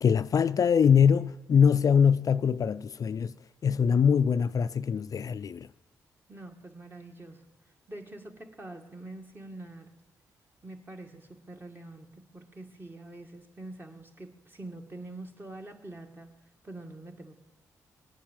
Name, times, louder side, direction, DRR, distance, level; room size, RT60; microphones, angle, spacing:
voice 1, 0.0-3.3 3.6-5.7, left 7 dB, 50° left, 0.4 m, -23 dB
voice 2, 6.3-7.4 7.9-9.9 10.6-16.3 16.6-17.4, right 2 dB, 25° right, 2.0 m, -45 dB
19.0 x 8.7 x 7.4 m
supercardioid pair, 45°, 8 cm